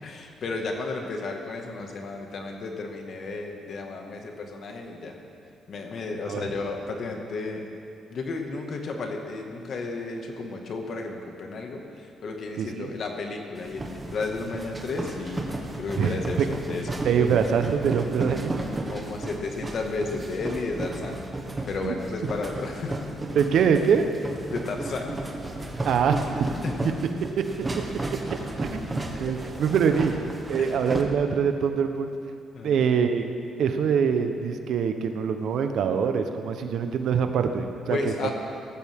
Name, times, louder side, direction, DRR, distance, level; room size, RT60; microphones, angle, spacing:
voice 1, 0.0-5.2 5.7-7.7 8.1-17.0 18.9-21.3 21.6-23.0 24.5-25.2 26.6-26.9 30.6-30.8 32.5-32.8 37.9-38.3, left 3 dB, 60° left, 2 dB, 2.0 m, -33 dB
voice 2, 12.6-12.9 15.9-16.5 17.0-18.6 21.8-21.9 23.3-24.0 25.8-26.2 28.6-28.8 29.2-32.1 32.6-33.2 33.6-38.3, right 7 dB, 70° right, 7 dB, 1.0 m, -24 dB
sound 1, 13.6-31.0, right 2 dB, 20° right, 1.7 m, -34 dB
18.0 x 14.5 x 3.7 m, 2.5 s
cardioid pair, 90°, 0 cm